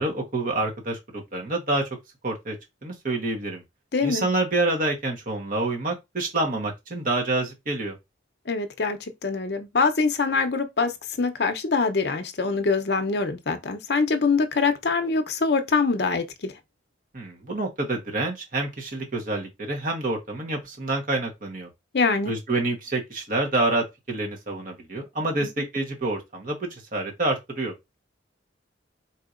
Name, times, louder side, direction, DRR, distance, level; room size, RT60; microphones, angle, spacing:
voice 1, 0.0-1.9 2.2-2.6 2.8-3.6 4.0-8.0 17.1-21.7 22.2-27.7, right 2 dB, 45° right, 1.2 m, -27 dB
voice 2, 3.9-4.3 8.5-16.5 21.9-22.3 25.4-25.5, left 4 dB, 55° left, 0.6 m, -24 dB
4.2 x 2.8 x 2.5 m
head